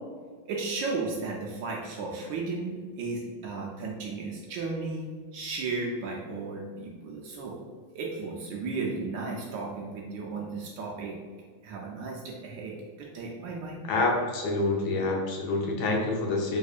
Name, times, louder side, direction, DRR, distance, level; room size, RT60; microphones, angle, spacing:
voice 1, 0.4-7.6 7.9-11.2 11.6-13.8, right 3 dB, 75° right, -2 dB, 1.1 m, -34 dB
voice 2, 13.9-16.6, left 2 dB, 80° left, 0 dB, 1.4 m, -27 dB
3.6 x 3.4 x 2.4 m, 1.5 s
omnidirectional pair, 2.3 m